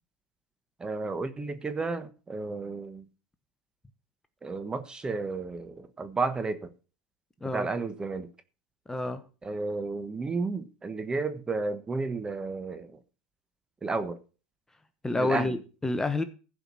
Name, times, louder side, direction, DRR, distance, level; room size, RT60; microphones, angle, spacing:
voice 1, 0.8-3.0 4.4-6.7 7.5-8.3 9.4-13.0 13.8-14.2 15.2-15.5, right 3 dB, 15° right, 1.2 m, -32 dB
voice 2, 8.9-9.2 15.0-16.2, left 2 dB, 10° left, 1.0 m, -29 dB
15.0 x 5.2 x 6.2 m
hypercardioid pair, 110°, 5 cm